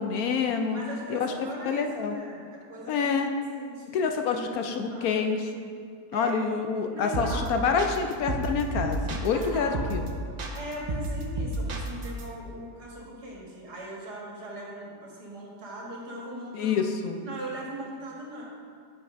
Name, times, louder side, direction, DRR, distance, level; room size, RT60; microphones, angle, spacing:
voice 1, 0.0-0.8 1.1-1.3 1.6-2.1 2.9-3.3 3.9-5.7 6.1-10.0 16.5-17.2, left 5 dB, 70° left, 5 dB, 1.0 m, -27 dB
voice 2, 0.7-2.4 2.7-3.1 3.5-5.3 6.1-6.3 6.9-7.5 9.3-9.8 10.5-16.8 17.2-18.4, right 1 dB, 75° right, -4 dB, 2.2 m, -40 dB
sound 1, 7.1-7.5 7.8-9.4 9.7-10.1 10.4-12.2, right 2 dB, 50° right, 0.5 m, -31 dB
8.1 x 5.9 x 5.1 m, 2.2 s
omnidirectional pair, 1.8 m